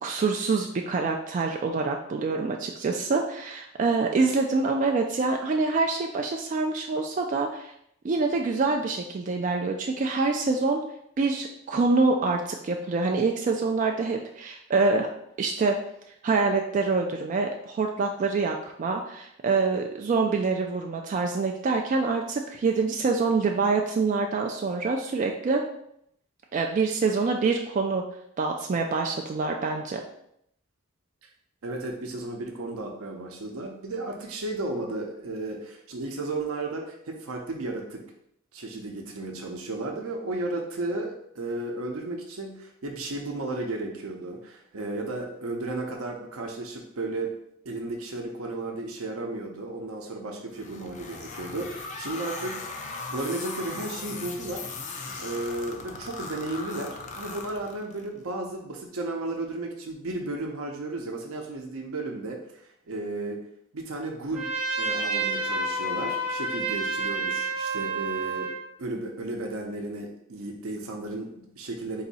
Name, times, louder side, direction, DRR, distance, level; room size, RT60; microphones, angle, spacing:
voice 1, 0.0-7.7 8.0-10.8 11.2-15.1 15.4-15.8 16.2-25.6 26.5-28.0 28.4-30.0, right 4 dB, 35° right, 2 dB, 0.3 m, -26 dB
voice 2, 31.6-38.0 38.5-47.4 47.6-52.8 53.1-54.9 55.2-63.4 63.7-64.5 64.8-68.5 68.8-72.0, right 2 dB, 80° right, 2 dB, 0.6 m, -34 dB
sound 1, 50.5-58.1, left 3 dB, 35° left, 0.4 m, -38 dB
Trumpet, 64.3-68.6, right 3 dB, 5° right, 0.8 m, -29 dB
4.0 x 2.7 x 4.0 m, 0.73 s
head